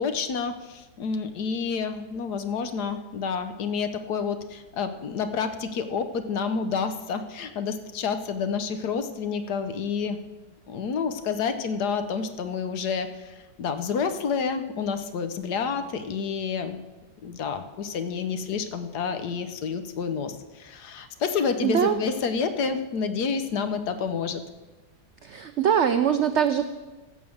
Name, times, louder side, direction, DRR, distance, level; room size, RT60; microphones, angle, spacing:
voice 1, 0.0-10.2 10.7-16.8 17.2-24.4, left 5 dB, 70° left, 9 dB, 1.4 m, -29 dB
voice 2, 21.6-22.1 25.2-26.6, right 8 dB, 90° right, 9 dB, 0.6 m, -22 dB
15.0 x 6.5 x 7.1 m, 1.2 s
omnidirectional pair, 1.9 m